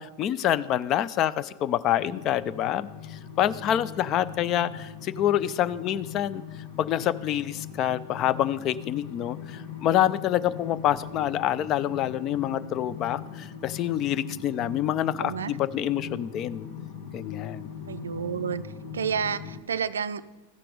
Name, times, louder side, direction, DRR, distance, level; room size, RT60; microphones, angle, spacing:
voice 1, 0.0-6.4 6.8-16.7 17.1-17.7, left 11 dB, 35° left, 16 dB, 0.3 m, -27 dB
sound 1, 1.9-19.6, left 7 dB, 55° left, 1.4 m, -41 dB
voice 2, 15.2-15.5 17.9-18.6 18.9-20.2, right 7 dB, 70° right, 15 dB, 0.3 m, -30 dB
14.0 x 5.9 x 4.9 m, 1.1 s
figure-of-eight pair, 90°, 0 cm